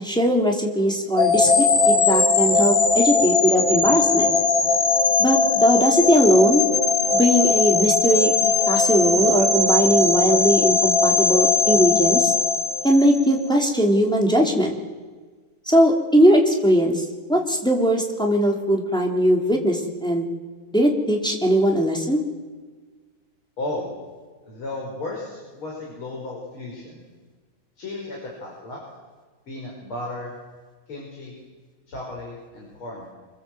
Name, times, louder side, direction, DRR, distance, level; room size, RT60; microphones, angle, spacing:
voice 1, 0.0-4.3 5.2-6.6 7.1-12.3 12.8-14.8 15.7-17.0 17.3-20.3 20.7-22.2, equal, ahead, -1 dB, 3.5 m, -20 dB
sound 1, 1.2-13.3, left 4 dB, 45° left, 2.3 m, -19 dB
voice 2, 23.6-23.9 24.4-27.0 27.8-28.8 29.5-30.3 30.9-31.4 31.9-33.1, left 2 dB, 85° left, -2 dB, 6.2 m, -34 dB
27.0 x 26.5 x 8.0 m, 1.4 s
omnidirectional pair, 2.3 m